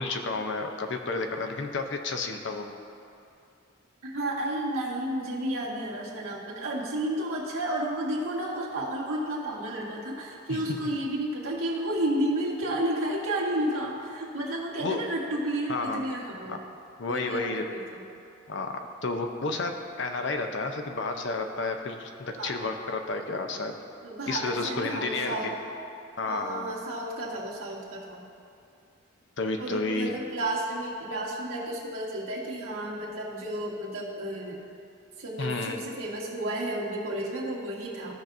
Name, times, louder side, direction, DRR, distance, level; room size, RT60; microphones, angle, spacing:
voice 1, 0.0-2.7 10.5-10.8 14.8-15.0 15.7-16.0 16.5-16.6 17.0-17.7 18.5-23.7 24.3-25.6 26.2-26.7 29.4-30.2 35.4-35.8, left 3 dB, 55° left, 4 dB, 0.6 m, -31 dB
voice 2, 4.0-16.6 17.1-18.0 22.4-22.6 24.0-25.6 26.3-28.2 29.6-34.7 35.2-38.1, right 1 dB, 90° right, -4 dB, 1.7 m, -32 dB
14.5 x 5.8 x 2.6 m, 2.6 s
head